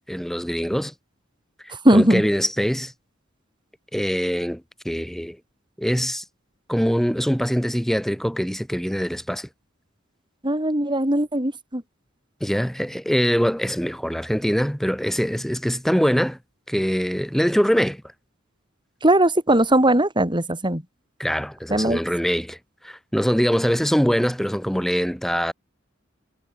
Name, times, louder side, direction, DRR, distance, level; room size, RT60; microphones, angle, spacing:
voice 1, 0.1-0.9 1.6-2.9 3.9-5.4 5.8-6.2 6.7-9.5 12.4-16.4 16.7-18.0 21.2-22.6 22.8-25.5, equal, ahead, 3.9 m, -23 dB
voice 2, 1.8-2.2 10.4-11.8 19.0-20.8 21.7-22.0, right 1 dB, 25° right, 7.0 m, -19 dB
head